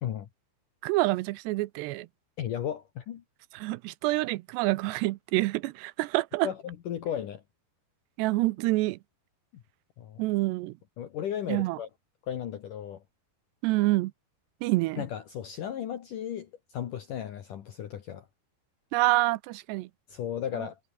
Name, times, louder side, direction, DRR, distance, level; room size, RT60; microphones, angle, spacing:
voice 1, 0.8-2.1 3.5-6.5 8.2-9.0 10.2-10.8 11.5-11.8 13.6-14.1 14.6-15.0 18.9-19.9, right 20 dB, 85° right, 2.8 m, -27 dB
voice 2, 2.4-3.2 6.4-7.4 10.0-10.2 11.0-11.9 12.3-13.0 15.0-18.2 20.1-20.8, left 10 dB, 60° left, 2.6 m, -35 dB
omnidirectional pair, 5.0 m